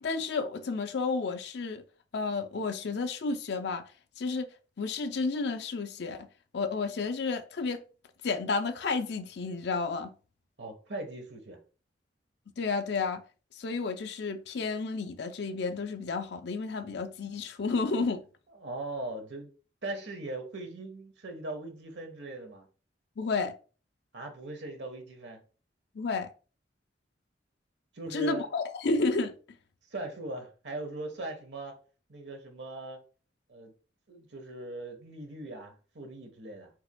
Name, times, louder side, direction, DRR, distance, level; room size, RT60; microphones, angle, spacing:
voice 1, 0.0-1.8 2.1-3.8 4.2-4.5 4.8-6.3 6.5-7.8 8.2-10.1 12.6-13.2 13.6-18.2 23.2-23.5 26.0-26.3 28.1-29.3, left 4 dB, 65° left, 0.5 m, -31 dB
voice 2, 10.6-11.6 18.6-19.5 19.8-22.7 24.1-25.4 27.9-28.5 29.9-31.7 32.1-33.0 33.5-33.7 34.1-36.7, right 2 dB, 75° right, 1.2 m, -40 dB
4.7 x 4.3 x 2.2 m
head